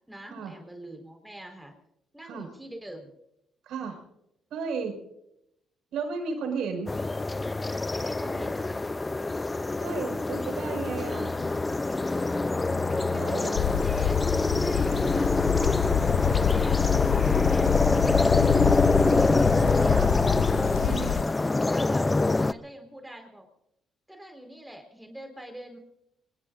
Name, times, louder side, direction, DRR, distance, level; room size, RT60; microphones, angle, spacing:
voice 1, 0.1-1.7 2.1-3.1 7.9-8.8 11.1-11.5 12.9-14.2 14.6-15.3 16.1-20.0 20.8-22.1 22.4-23.5 24.1-25.8, right 1 dB, 5° right, 3 dB, 4.2 m, -44 dB
voice 2, 3.6-4.0 4.5-5.0 5.9-6.9 9.8-11.3 13.1-13.5 19.8-20.2 20.7-21.3, right 5 dB, 80° right, 4 dB, 5.4 m, -34 dB
sound 1, 6.9-22.5, left 2 dB, 20° left, 0.5 m, -25 dB
sound 2, 13.5-21.2, left 10 dB, 80° left, 0.5 m, -26 dB
26.0 x 21.0 x 2.5 m, 0.82 s
cardioid pair, 90°, 0 cm